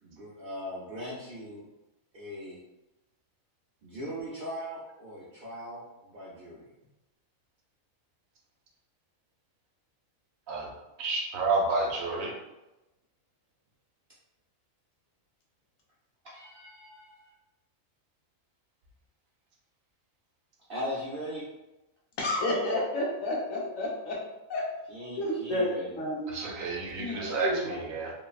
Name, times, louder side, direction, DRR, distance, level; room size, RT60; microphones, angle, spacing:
voice 1, 0.0-1.7 2.1-2.6 3.8-6.7 16.2-17.3 20.7-21.5 24.9-26.0 27.1-27.6, equal, 60° right, -6 dB, 0.6 m, -39 dB
voice 2, 11.0-12.3 26.3-28.1, right 3 dB, 80° right, -2 dB, 1.0 m, -30 dB
voice 3, 22.2-24.2 24.5-24.6 25.2-26.4 27.0-27.6, left 1 dB, 75° left, -2 dB, 1.0 m, -30 dB
3.1 x 2.1 x 2.3 m, 0.99 s
omnidirectional pair, 1.4 m